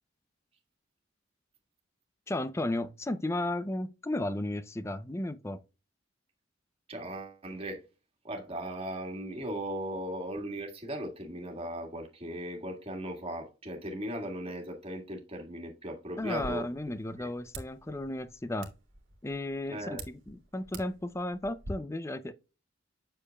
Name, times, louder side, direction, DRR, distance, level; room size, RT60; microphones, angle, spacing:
voice 1, 2.3-5.6 16.2-18.7 19.2-22.3, left 1 dB, 15° left, 0.4 m, -34 dB
voice 2, 6.9-7.8 8.2-16.7 17.2-17.3 19.7-20.0, right 1 dB, 30° right, 1.7 m, -38 dB
sound 1, 16.2-21.7, right 2 dB, 75° right, 1.6 m, -47 dB
7.6 x 6.5 x 2.2 m
head